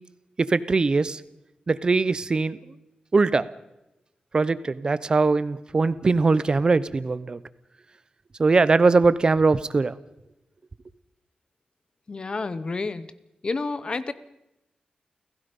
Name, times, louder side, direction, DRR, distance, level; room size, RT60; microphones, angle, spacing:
voice 1, 0.4-1.2 1.7-2.6 3.1-3.5 4.3-7.4 8.4-10.0, right 3 dB, 30° right, 0.7 m, -21 dB
voice 2, 12.1-13.1 13.4-14.1, left 3 dB, 35° left, 0.9 m, -29 dB
29.0 x 16.5 x 5.4 m
wide cardioid pair, 170°, 3 cm